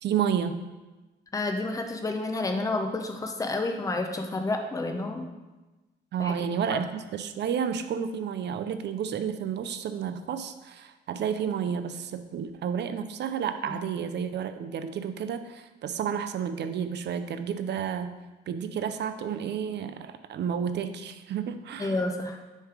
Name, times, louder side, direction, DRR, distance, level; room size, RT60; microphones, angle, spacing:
voice 1, 0.0-0.6 6.1-18.2 18.5-22.0, right 8 dB, 60° right, 10 dB, 0.5 m, -31 dB
voice 2, 1.3-5.3 6.2-6.3 6.7-6.8 13.6-13.8 21.8-22.4, left 2 dB, 15° left, 4 dB, 0.6 m, -30 dB
6.4 x 3.3 x 4.9 m, 1.1 s
cardioid pair, 90°, 20 cm